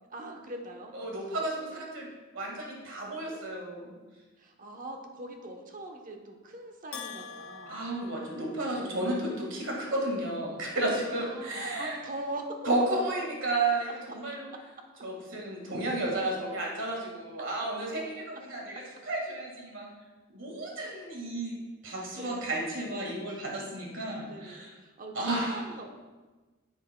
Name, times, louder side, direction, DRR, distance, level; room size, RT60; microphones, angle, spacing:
voice 1, 0.1-1.0 4.4-7.8 11.1-12.6 22.2-22.5 24.3-25.9, right 1 dB, 40° right, 3 dB, 0.9 m, -42 dB
voice 2, 0.9-2.1 2.3-3.9 7.7-12.0 12.6-14.5 15.0-18.0 18.3-19.9 20.3-21.5 21.8-24.7 25.1-25.6, right 2 dB, 65° right, -1 dB, 1.8 m, -32 dB
Bell, 6.9-9.1, left 6 dB, 85° left, 0.7 m, -45 dB
10.0 x 7.2 x 2.2 m, 1.3 s
head